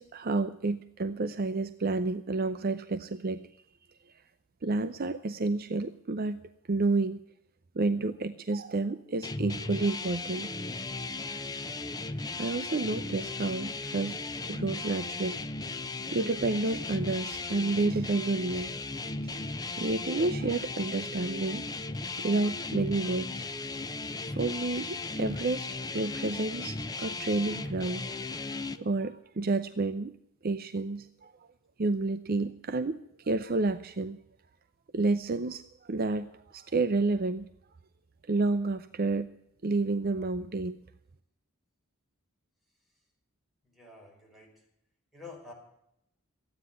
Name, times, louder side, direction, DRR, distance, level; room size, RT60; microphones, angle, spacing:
voice 1, 0.0-3.5 4.6-6.4 6.7-7.2 7.8-10.5 12.4-14.1 14.5-15.4 16.1-18.7 19.2-19.4 19.8-21.7 22.2-23.4 23.7-23.9 24.3-30.1 30.4-31.3 31.8-34.2 34.9-37.5 38.3-39.3 39.6-40.8, right 3 dB, 45° right, 11 dB, 0.6 m, -30 dB
sound 1, 9.2-28.8, left 3 dB, 20° left, 0.7 m, -36 dB
voice 2, 43.7-44.6 45.1-45.5, left 3 dB, ahead, -2 dB, 5.6 m, -48 dB
14.0 x 9.8 x 9.7 m, 0.77 s
head